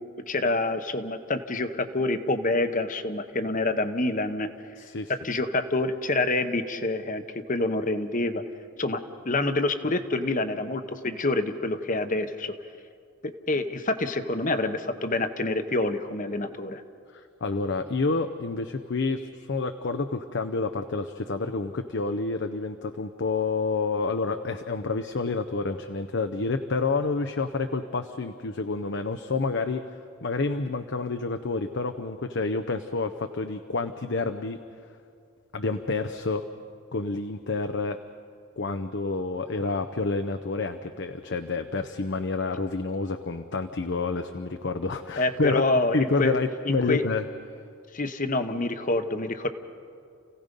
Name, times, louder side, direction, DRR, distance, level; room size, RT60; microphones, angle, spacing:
voice 1, 0.3-4.5 5.2-7.2 7.5-8.4 8.8-12.5 13.2-16.8 45.2-46.3 46.7-47.0 47.9-49.5, left 2 dB, 40° left, 9 dB, 1.0 m, -27 dB
voice 2, 4.8-5.1 17.1-34.6 35.5-36.4 36.9-38.0 38.6-45.6 45.9-47.2, left 3 dB, 55° left, 7 dB, 0.6 m, -29 dB
29.5 x 16.5 x 5.3 m, 2.4 s
head